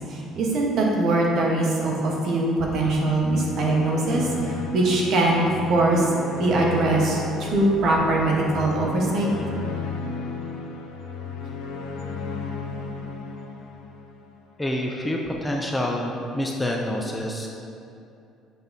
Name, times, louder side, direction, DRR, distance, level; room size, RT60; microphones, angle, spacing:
voice 1, 0.1-5.4 5.7-6.1 6.3-9.3, right 2 dB, 50° right, -2 dB, 1.1 m, -22 dB
sound 1, 3.1-14.4, left 4 dB, 85° left, 0.6 m, -34 dB
voice 2, 14.6-17.5, left 1 dB, 5° left, -1 dB, 0.4 m, -27 dB
6.7 x 5.8 x 2.7 m, 2.7 s
cardioid pair, 150°, 0 cm